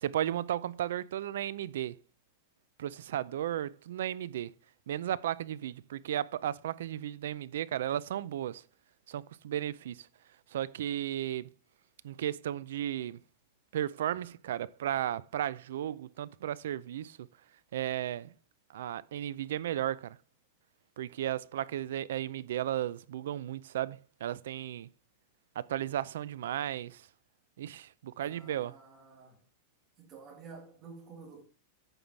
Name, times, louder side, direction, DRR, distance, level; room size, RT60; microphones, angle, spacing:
voice 1, 0.0-2.0 2.8-4.5 4.9-8.6 9.1-10.1 10.5-11.5 12.0-13.2 13.7-17.2 17.7-18.3 18.7-20.2 21.0-24.9 25.6-27.0 27.6-28.7, right 11 dB, 80° right, 0.5 m, -34 dB
voice 2, 28.2-29.4 30.0-31.4, right 4 dB, 25° right, 2.2 m, -51 dB
9.0 x 5.5 x 4.6 m
supercardioid pair, 175°, 0 cm